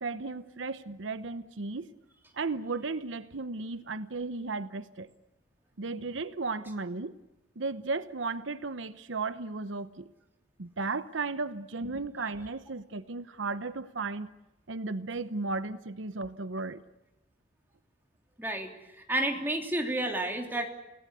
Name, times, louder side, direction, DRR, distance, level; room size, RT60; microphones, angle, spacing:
voice 1, 0.0-1.9 2.3-5.1 5.8-7.2 7.6-10.1 10.6-14.3 14.7-16.8, right 3 dB, 85° right, 13 dB, 0.9 m, -35 dB
voice 2, 18.4-20.7, right 1 dB, 10° right, 2 dB, 3.2 m, -31 dB
30.0 x 18.5 x 8.2 m, 0.96 s
head